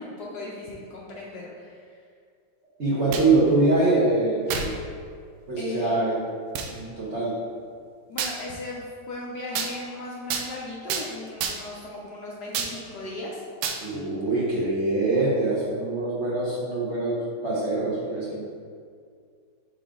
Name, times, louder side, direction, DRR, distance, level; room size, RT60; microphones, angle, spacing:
voice 1, 0.0-2.0 5.6-6.0 8.1-13.3, left 2 dB, 65° left, -4 dB, 1.2 m, -37 dB
voice 2, 2.8-4.7 5.5-6.2 6.6-7.3 13.8-17.2 17.4-18.4, right 2 dB, 40° right, -8 dB, 1.2 m, -24 dB
sound 1, 2.9-3.4 4.5-4.7 5.4-5.5 6.6-6.7 8.2-8.4 9.6-9.7 10.3-10.5 10.9-11.1 11.4-11.8 12.5-12.8 13.6-13.8, right 6 dB, 90° right, 1.5 m, -29 dB
5.1 x 4.9 x 3.7 m, 2.2 s
omnidirectional pair, 2.2 m